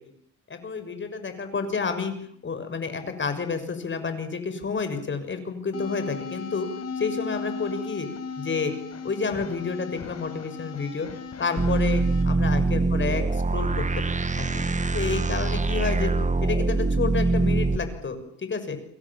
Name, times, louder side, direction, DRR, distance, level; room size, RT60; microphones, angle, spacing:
voice 1, 0.5-2.1 2.4-6.7 7.0-8.1 8.4-8.7 9.0-11.1 11.4-13.2 13.5-14.0 14.3-14.6 14.9-16.1 16.4-18.8, left 5 dB, 40° left, 9 dB, 6.6 m, -30 dB
sound 1, 5.7-12.2, left 5 dB, 55° left, 5.6 m, -36 dB
sound 2, 11.6-17.8, right 3 dB, 25° right, 1.8 m, -24 dB
29.5 x 23.0 x 7.5 m, 0.63 s
cardioid pair, 90°, 30 cm